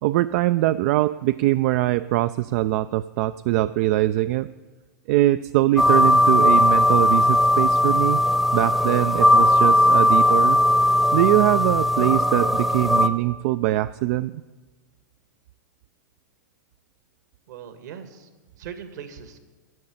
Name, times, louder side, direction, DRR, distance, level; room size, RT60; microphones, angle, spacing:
voice 1, 0.0-4.5 5.1-8.2 8.5-10.6 11.1-14.4, right 16 dB, 50° right, 13 dB, 0.3 m, -22 dB
sound 1, 5.8-13.1, left 1 dB, ahead, 0.8 m, -18 dB
voice 2, 17.5-18.3 18.6-19.4, right 8 dB, 65° right, 9 dB, 1.6 m, -39 dB
11.0 x 7.6 x 9.4 m, 1.3 s
hypercardioid pair, 105°, 10 cm